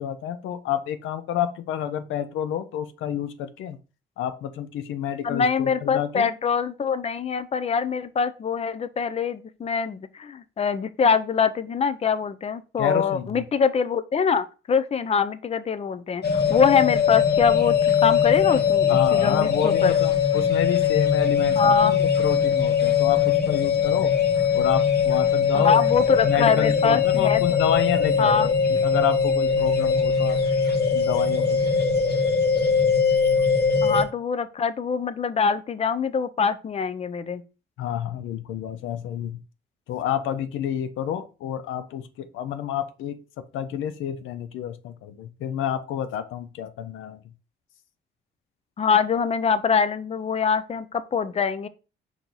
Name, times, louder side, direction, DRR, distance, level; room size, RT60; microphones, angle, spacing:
voice 1, 0.0-3.8 4.2-6.3 12.8-13.4 18.9-24.1 24.5-25.8 26.2-30.4 30.9-31.7 37.8-39.4 39.9-43.2 43.5-47.2, left 10 dB, 80° left, 0.5 m, -29 dB
voice 2, 5.2-19.9 21.6-22.0 25.5-27.4 28.2-28.5 33.8-37.4 48.8-51.7, left 6 dB, 30° left, 0.4 m, -24 dB
sound 1, 16.2-34.0, left 6 dB, 55° left, 1.2 m, -21 dB
4.5 x 2.8 x 3.8 m
cardioid pair, 90°, 20 cm